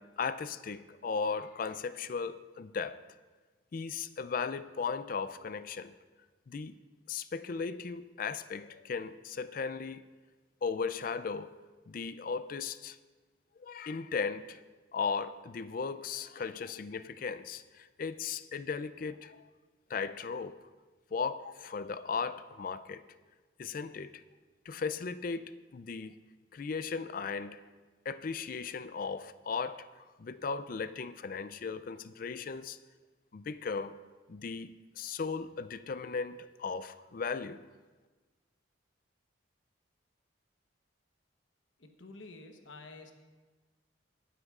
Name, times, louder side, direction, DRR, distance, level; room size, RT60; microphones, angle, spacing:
voice 1, 0.0-3.0 3.7-5.9 6.5-6.8 7.1-10.0 10.6-11.5 11.9-13.0 13.6-14.6 14.9-19.4 19.9-20.6 21.1-23.0 23.6-24.2 24.7-25.5 25.7-26.2 26.5-27.6 28.1-29.8 30.2-32.8 33.3-34.0 34.3-37.6, left 5 dB, 45° left, 0.4 m, -36 dB
voice 2, 41.8-43.1, left 3 dB, 75° left, 1.1 m, -49 dB
19.5 x 10.0 x 2.4 m
head